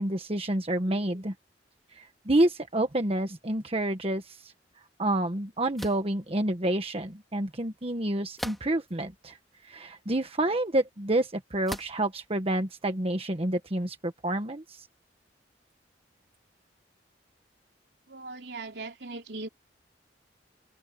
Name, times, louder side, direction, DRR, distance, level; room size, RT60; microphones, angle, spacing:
voice 1, 0.0-1.3 2.0-4.5 5.0-9.4 9.6-14.9, right 1 dB, 35° right, 1.3 m, -28 dB
sound 1, 5.8-6.1 8.4-8.9 9.6-9.7 11.7-12.1, equal, ahead, 3.7 m, -38 dB
voice 2, 18.1-19.5, right 3 dB, 70° right, 3.7 m, -39 dB
head